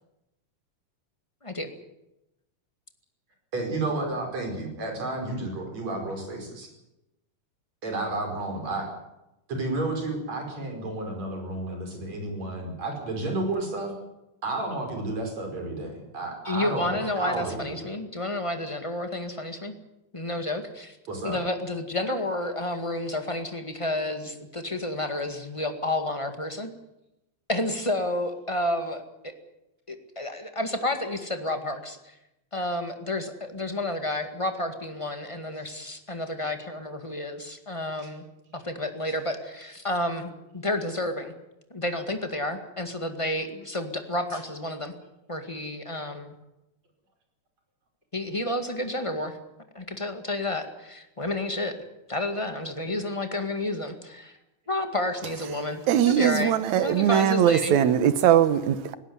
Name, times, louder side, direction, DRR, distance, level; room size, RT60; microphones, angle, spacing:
voice 1, 3.5-6.7 7.8-8.9 9.5-13.9 14.4-17.8 21.1-21.4 38.0-38.1 44.3-44.4, right 2 dB, 65° right, 6.5 m, -31 dB
voice 2, 16.4-19.7 20.1-21.0 21.2-26.7 27.5-29.0 29.9-32.1 32.5-38.2 38.5-41.3 41.7-44.9 45.3-46.3 48.1-49.4 49.7-51.7 52.1-54.4 54.7-57.8, left 1 dB, 15° left, 1.6 m, -30 dB
voice 3, 55.9-58.9, right 10 dB, 80° right, 2.4 m, -21 dB
19.5 x 17.0 x 9.6 m
omnidirectional pair, 3.3 m